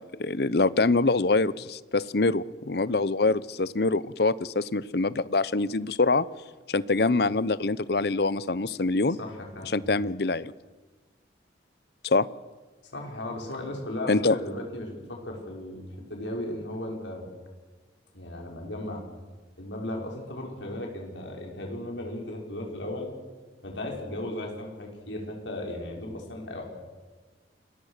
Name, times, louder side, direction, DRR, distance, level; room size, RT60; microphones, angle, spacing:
voice 1, 0.0-6.3 6.7-9.2 9.7-10.5 12.0-12.3 14.1-14.4, left 3 dB, 60° left, 18 dB, 0.7 m, -25 dB
voice 2, 9.2-9.7 12.9-15.8 16.1-17.3 18.1-19.0 19.6-23.1 23.6-26.7, left 1 dB, 80° left, 0 dB, 5.9 m, -36 dB
28.5 x 21.5 x 6.7 m, 1.3 s
head